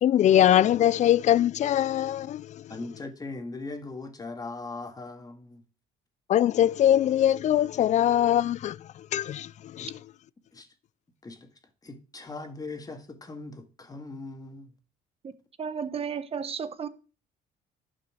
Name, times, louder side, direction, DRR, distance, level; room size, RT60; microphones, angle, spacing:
voice 1, 0.0-2.6 6.3-10.0, left 11 dB, 45° left, 0.4 m, -22 dB
voice 2, 2.7-5.6 9.8-9.9 10.5-10.7 11.2-11.5 11.8-14.7, left 3 dB, 20° left, 1.8 m, -39 dB
voice 3, 15.6-16.9, right 6 dB, 35° right, 1.1 m, -33 dB
10.5 x 5.9 x 6.1 m
cardioid pair, 110°, 17 cm